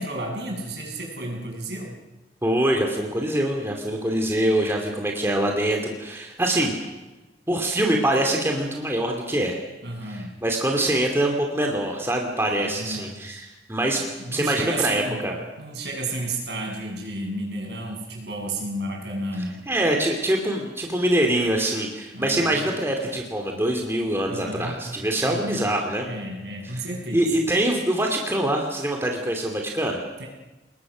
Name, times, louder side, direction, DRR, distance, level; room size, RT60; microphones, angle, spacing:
voice 1, 0.0-2.0 9.8-10.4 12.6-13.1 14.0-15.3 15.6-19.7 22.1-22.8 23.0-23.1 24.3-24.9 25.2-27.3 30.2-30.3, right 1 dB, 70° right, 0 dB, 7.1 m, -32 dB
voice 2, 2.4-6.7 7.5-9.6 10.1-15.4 19.7-26.1 26.7-26.8 27.1-30.0, right 1 dB, 15° right, 1 dB, 2.7 m, -24 dB
30.0 x 20.0 x 6.3 m, 1.1 s
head